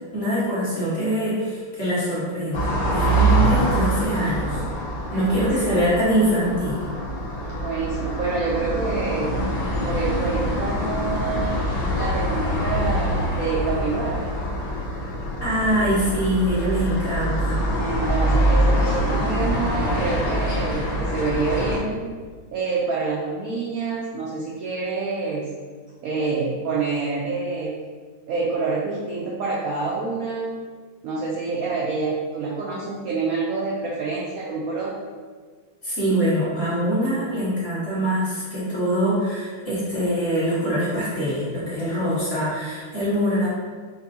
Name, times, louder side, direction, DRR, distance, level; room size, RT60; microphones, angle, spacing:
voice 1, 0.1-4.6 5.1-6.8 15.4-17.6 35.8-43.5, equal, 35° left, -9 dB, 1.4 m, -23 dB
sound 1, 2.5-21.8, right 1 dB, 70° left, 1.5 m, -24 dB
voice 2, 5.1-5.8 7.6-9.4 9.8-11.5 11.9-14.2 17.8-22.1 22.5-25.5 26.0-27.7 28.3-30.6 31.0-35.0, right 4 dB, 80° right, -3 dB, 0.7 m, -27 dB
5.3 x 2.6 x 2.7 m, 1.5 s
omnidirectional pair, 2.1 m